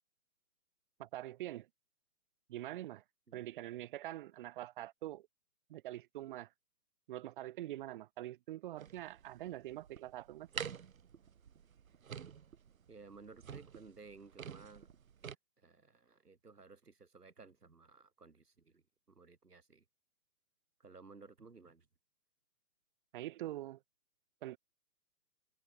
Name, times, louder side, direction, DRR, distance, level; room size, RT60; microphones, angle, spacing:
voice 1, 1.0-1.7 2.5-3.0 3.3-5.3 5.7-6.5 7.1-10.5 23.1-23.8 24.4-24.6, right 14 dB, 35° right, 1.4 m, -44 dB
sound 1, 8.8-15.4, right 7 dB, 60° right, 3.0 m, -48 dB
voice 2, 12.9-14.9 15.3-19.9 20.8-21.9, right 4 dB, 85° right, 5.3 m, -57 dB
figure-of-eight pair, 135°, 46 cm